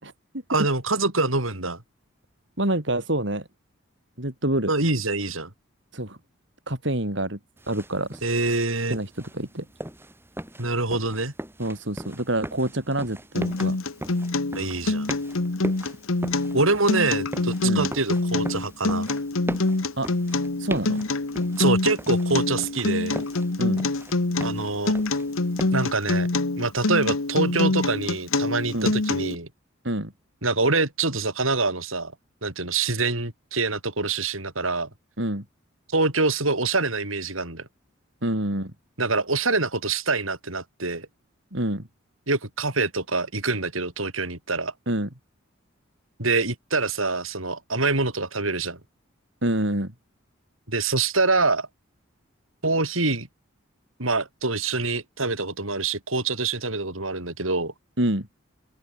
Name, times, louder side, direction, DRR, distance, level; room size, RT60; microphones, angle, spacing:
voice 1, 0.5-1.8 4.7-5.5 8.2-9.0 10.6-11.3 14.5-15.1 16.5-19.1 21.6-23.2 24.4-25.0 25.7-26.3 26.6-29.5 30.4-32.1 32.4-34.9 35.9-37.7 39.0-41.1 42.3-44.7 46.2-48.8 50.7-51.7 52.6-53.3 54.0-57.7, right 3 dB, 80° right, 6.3 m, -25 dB
voice 2, 2.6-3.5 4.2-4.7 5.9-6.2 6.7-7.4 7.7-8.2 8.9-9.6 11.6-13.8 17.6-17.9 20.0-20.1 20.6-21.0 23.6-23.8 28.7-28.9 29.8-30.1 35.2-35.4 38.2-38.7 41.5-41.9 44.9-45.1 49.4-49.9 58.0-58.3, right 1 dB, 60° right, 5.1 m, -27 dB
sound 1, 7.6-25.9, right 1 dB, 10° right, 4.0 m, -40 dB
Acoustic guitar, 13.3-29.4, left 2 dB, 85° left, 1.3 m, -25 dB
open air
head